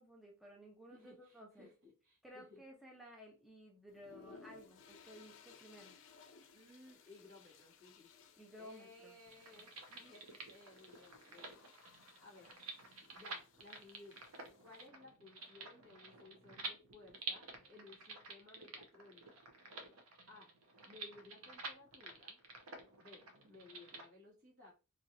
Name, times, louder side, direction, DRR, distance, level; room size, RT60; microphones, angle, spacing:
voice 1, 0.0-1.7 2.2-6.0 8.4-9.2, equal, ahead, -1 dB, 0.6 m, -56 dB
voice 2, 0.9-2.6 6.5-8.1 8.6-11.9 12.2-12.5 13.1-14.2 14.6-19.2 20.3-20.5 20.9-22.4 22.7-24.7, left 2 dB, 65° right, -4 dB, 1.8 m, -59 dB
sound 1, 3.9-14.9, left 5 dB, 65° left, 0.5 m, -62 dB
sound 2, 9.3-24.1, right 3 dB, 80° right, 0.8 m, -50 dB
3.1 x 2.9 x 2.6 m, 0.32 s
head